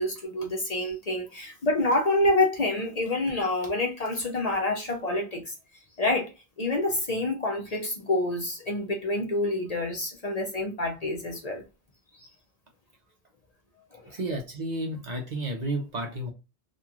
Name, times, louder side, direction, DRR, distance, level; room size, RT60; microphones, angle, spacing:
voice 1, 0.0-5.5 6.0-6.3 6.6-11.6 12.2-12.3 13.9-14.2, left 2 dB, 45° left, 0.7 m, -27 dB
voice 2, 14.1-16.3, right 1 dB, 50° right, 0.7 m, -31 dB
2.9 x 2.5 x 2.3 m
omnidirectional pair, 1.1 m